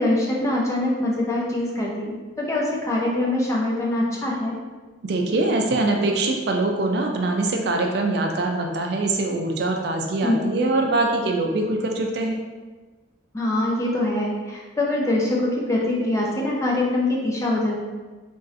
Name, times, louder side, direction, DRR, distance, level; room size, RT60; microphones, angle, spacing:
voice 1, 0.0-4.5 10.2-10.5 13.3-17.8, left 1 dB, 15° left, -3 dB, 0.4 m, -23 dB
voice 2, 5.0-12.4, right 2 dB, 55° right, 2 dB, 0.3 m, -23 dB
3.0 x 2.5 x 2.6 m, 1.3 s
head